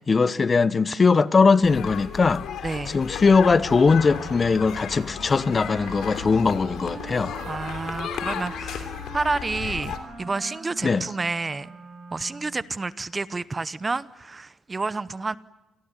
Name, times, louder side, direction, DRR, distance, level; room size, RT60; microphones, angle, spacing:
voice 1, 0.1-2.4 2.9-7.3 10.8-11.0, left 4 dB, 35° left, 0.9 m, -20 dB
sound 1, 1.6-10.0, left 8 dB, 80° left, 3.3 m, -35 dB
voice 2, 2.6-3.0 7.5-8.9 9.1-11.7 12.1-15.4, right 3 dB, 25° right, 0.9 m, -29 dB
Wind instrument woodwind instrument, 3.9-12.6, right 3 dB, 45° right, 7.4 m, -42 dB
27.5 x 19.0 x 9.8 m
cardioid pair, 90°, 0 cm